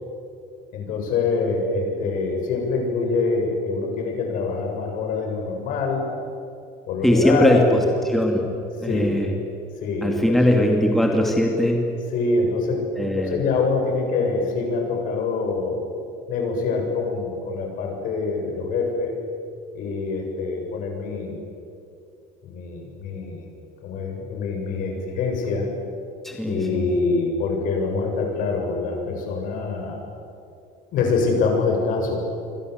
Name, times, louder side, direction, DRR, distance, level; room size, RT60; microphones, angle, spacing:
voice 1, 0.7-6.1 6.9-7.8 8.8-9.2 9.8-10.4 12.1-15.8 16.3-19.2 19.7-21.4 22.4-23.4 23.8-25.7 26.5-30.0 30.9-32.2, left 4 dB, 60° left, 2 dB, 7.6 m, -25 dB
voice 2, 7.0-7.8 8.1-8.4 8.8-9.4 10.0-11.8 13.0-13.4 26.2-26.8, equal, ahead, 1 dB, 2.7 m, -20 dB
28.0 x 25.0 x 8.2 m, 2.6 s
cardioid pair, 145°, 16 cm